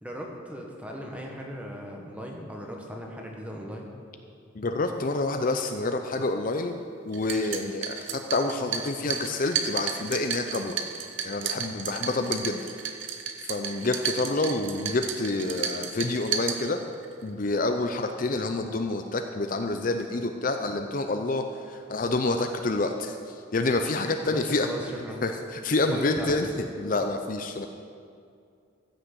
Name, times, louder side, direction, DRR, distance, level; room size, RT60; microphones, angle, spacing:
voice 1, 0.0-3.9 24.2-25.2 25.9-26.5, equal, 5° right, 0 dB, 1.5 m, -37 dB
voice 2, 4.5-6.8 7.1-10.7 11.2-12.7 13.4-16.8 17.2-24.7 25.2-27.7, left 2 dB, 45° left, 6 dB, 0.6 m, -28 dB
sound 1, 7.1-17.1, right 7 dB, 75° right, 0.9 m, -33 dB
14.5 x 6.5 x 8.2 m, 2.3 s
head